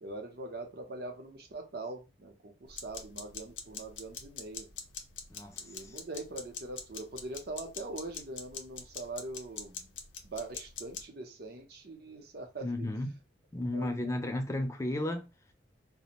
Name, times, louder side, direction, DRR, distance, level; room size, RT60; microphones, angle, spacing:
voice 1, 0.0-4.7 5.6-9.9 10.2-12.9 13.7-14.1, right 2 dB, 55° right, 0.6 m, -42 dB
sound 1, 2.7-11.1, left 6 dB, 80° left, 0.5 m, -45 dB
voice 2, 5.3-6.0 12.6-13.2 13.5-15.3, left 1 dB, 15° left, 0.3 m, -34 dB
2.5 x 2.0 x 2.8 m
head